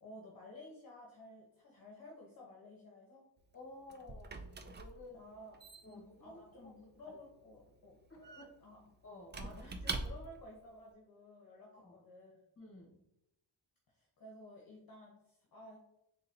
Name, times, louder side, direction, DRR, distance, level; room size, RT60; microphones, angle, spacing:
voice 1, 0.0-3.3 5.1-5.6 5.9-7.9 8.6-8.9 9.3-12.4 13.9-15.8, left 1 dB, 45° left, -2 dB, 1.0 m, -54 dB
Squeak / Wood, 3.4-10.5, right 3 dB, 25° right, 0.3 m, -46 dB
voice 2, 3.5-5.3 5.8-6.7 7.0-7.1 8.1-8.6 9.0-9.4 11.7-12.0 12.6-13.0, left 2 dB, 25° left, 0 dB, 1.3 m, -54 dB
3.9 x 3.7 x 2.8 m, 0.84 s
cardioid pair, 95°, 50 cm